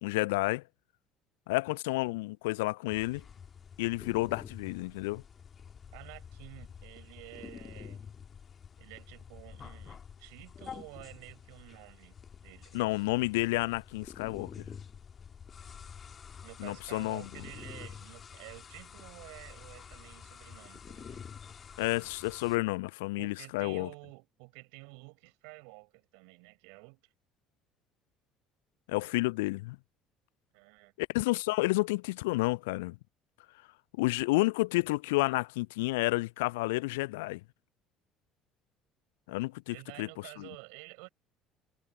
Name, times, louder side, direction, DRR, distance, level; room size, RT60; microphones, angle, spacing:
voice 1, 0.0-0.6 1.5-3.2 3.8-5.2 12.7-14.7 16.6-17.2 21.8-23.9 28.9-29.8 31.0-33.0 34.0-37.4 39.3-40.1 40.4-40.5, left 22 dB, 65° left, 0.6 m, -30 dB
sound 1, 2.9-22.6, left 7 dB, 35° left, 2.2 m, -48 dB
voice 2, 5.9-8.0 8.8-13.1 16.4-21.3 23.2-27.1 30.5-30.9 39.7-41.1, right 40 dB or more, 65° right, 6.8 m, -51 dB
figure-of-eight pair, 55°, 0 cm